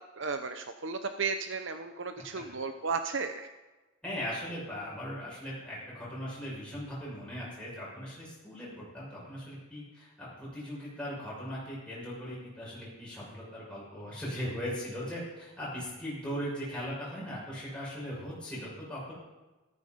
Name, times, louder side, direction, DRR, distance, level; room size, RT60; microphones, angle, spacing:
voice 1, 0.0-3.5, right 5 dB, 60° right, 8 dB, 0.8 m, -34 dB
voice 2, 4.0-19.2, equal, 5° left, -7 dB, 6.4 m, -39 dB
14.5 x 14.0 x 5.3 m, 1.1 s
head